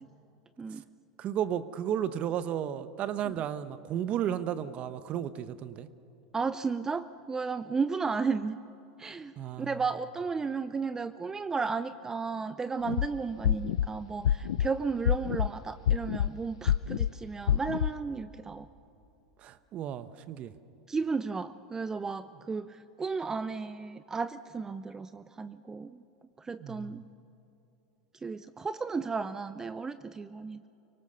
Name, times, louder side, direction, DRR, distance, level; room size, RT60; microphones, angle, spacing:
voice 1, 1.2-5.9 9.4-9.8 19.4-20.5 26.6-27.0, right 10 dB, 45° right, 13 dB, 1.0 m, -33 dB
voice 2, 6.3-8.6 9.0-18.7 20.9-26.0 26.4-27.1 28.2-30.7, right 4 dB, 20° right, 13 dB, 0.5 m, -34 dB
sound 1, 12.8-13.1 13.4-13.9 14.2-14.7 15.0-15.5 15.9-16.3 16.7-17.1 17.5-17.9, left 10 dB, 85° left, 0.4 m, -26 dB
24.5 x 18.0 x 6.8 m, 3.0 s
hypercardioid pair, 100°, 3 cm